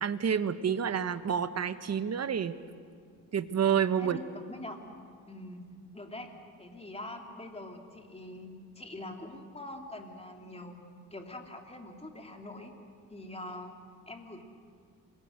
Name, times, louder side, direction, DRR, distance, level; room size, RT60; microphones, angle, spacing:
voice 1, 0.0-2.6 3.3-4.2, right 8 dB, 45° right, 12 dB, 1.2 m, -29 dB
voice 2, 4.0-4.8 5.3-5.6 5.9-6.3 6.6-10.8 11.1-12.7 13.1-13.7 14.1-14.5, left 1 dB, 15° left, 3 dB, 3.1 m, -44 dB
28.0 x 22.0 x 6.6 m, 2.2 s
cardioid pair, 95°, 37 cm